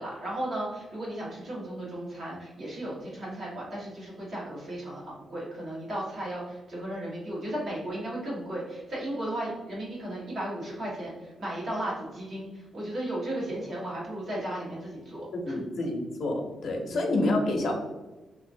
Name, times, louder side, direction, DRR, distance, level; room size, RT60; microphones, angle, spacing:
voice 1, 0.0-15.6 16.9-17.1, right 1 dB, 40° right, -6 dB, 1.4 m, -35 dB
voice 2, 15.3-17.7, left 2 dB, 50° left, 1 dB, 0.7 m, -28 dB
3.5 x 2.9 x 2.6 m, 1.1 s
wide cardioid pair, 165°, 0 cm